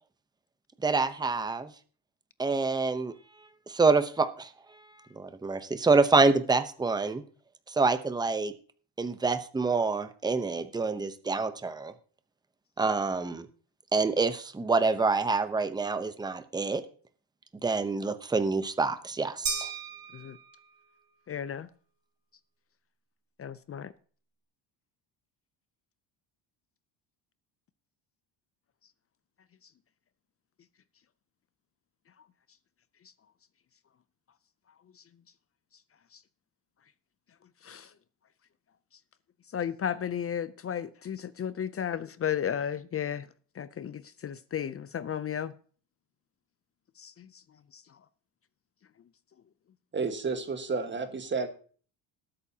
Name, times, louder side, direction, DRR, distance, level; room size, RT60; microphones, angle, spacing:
voice 1, 0.8-1.7 2.4-3.1 3.7-4.5 5.2-7.2 7.7-8.5 9.0-11.9 12.8-13.5 13.9-16.8 17.6-19.7, right 4 dB, 10° right, 0.8 m, -26 dB
sound 1, 19.5-20.9, right 6 dB, 50° right, 3.0 m, -36 dB
voice 2, 21.3-21.7 23.4-23.9 37.6-37.9 39.5-43.3 43.6-45.5 47.0-47.3 47.7-47.8, left 8 dB, 30° left, 0.5 m, -34 dB
voice 3, 49.9-51.5, right 4 dB, 25° right, 1.5 m, -31 dB
20.0 x 8.7 x 2.8 m
cardioid pair, 115°, 46 cm